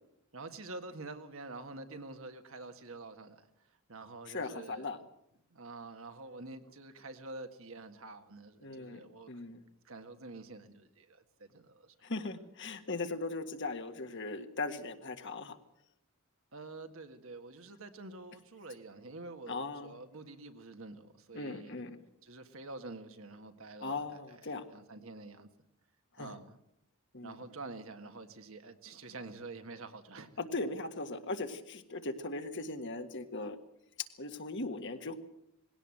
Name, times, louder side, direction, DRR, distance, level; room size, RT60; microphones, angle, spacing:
voice 1, 0.3-3.5 3.9-4.9 5.5-9.3 9.8-11.9 16.5-21.8 22.2-25.5 26.2-26.6 27.2-30.3, right 3 dB, 70° right, 1.8 m, -47 dB
voice 2, 4.3-5.0 8.6-9.6 12.0-15.6 19.5-19.9 21.3-22.0 23.8-24.6 26.2-26.4 27.1-27.4 30.4-33.6 34.2-35.1, left 3 dB, 55° left, 1.7 m, -39 dB
20.0 x 17.0 x 7.8 m
head